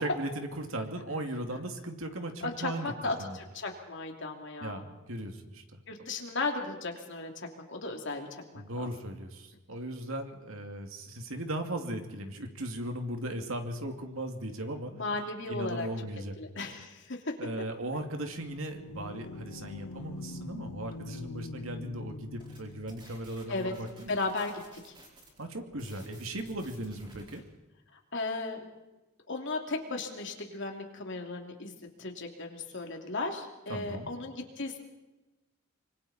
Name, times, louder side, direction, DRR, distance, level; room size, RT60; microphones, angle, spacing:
voice 1, 0.0-2.9 3.2-3.4 4.6-5.8 8.6-14.9 15.5-16.4 17.4-24.1 25.4-27.4 33.7-34.2, right 1 dB, 70° right, 4 dB, 2.5 m, -37 dB
voice 2, 2.4-4.8 5.9-8.9 14.9-15.9 16.4-17.2 23.5-23.7 24.1-24.9 28.1-28.7 29.3-34.8, left 3 dB, 60° left, 2 dB, 3.0 m, -36 dB
sound 1, 18.3-23.1, left 2 dB, 85° left, 0.8 m, -44 dB
sound 2, 22.4-27.4, right 1 dB, 20° right, 4.8 m, -55 dB
25.5 x 25.0 x 4.3 m, 1.1 s
head